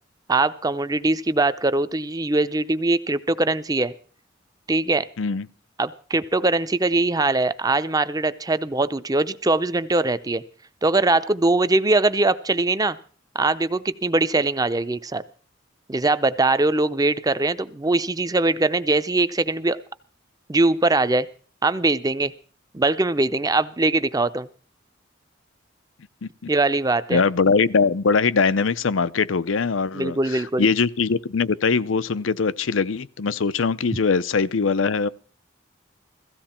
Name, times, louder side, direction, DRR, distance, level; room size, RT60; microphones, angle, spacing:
voice 1, 0.3-3.9 4.7-5.1 5.8-10.4 10.8-13.0 13.3-15.2 15.9-19.8 20.5-21.3 21.6-22.3 22.7-24.5 26.5-27.2 29.9-30.7, right 2 dB, 20° right, 0.6 m, -21 dB
voice 2, 27.1-35.1, left 5 dB, 90° left, 0.6 m, -22 dB
16.5 x 15.0 x 4.4 m
head